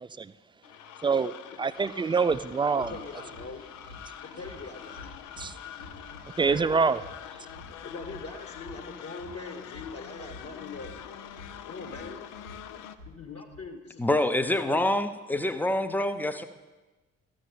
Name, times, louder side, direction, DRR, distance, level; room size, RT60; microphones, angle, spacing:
sound 1, 0.6-13.0, left 10 dB, 55° left, 0.7 m, -45 dB
voice 1, 1.0-1.3 1.6-2.9 5.4-5.5 6.4-7.0, right 5 dB, 15° right, 14 dB, 0.3 m, -25 dB
sound 2, 1.7-1.8 2.2-13.6, left 1 dB, 80° left, 2.5 m, -50 dB
voice 2, 2.7-3.7 4.2-5.0 7.8-10.9 11.7-12.2 13.0-14.8, left 3 dB, 40° left, 5 dB, 1.7 m, -42 dB
voice 3, 14.0-16.4, left 1 dB, 5° left, 10 dB, 0.7 m, -26 dB
13.5 x 6.4 x 6.7 m, 1.2 s
figure-of-eight pair, 40°, 37 cm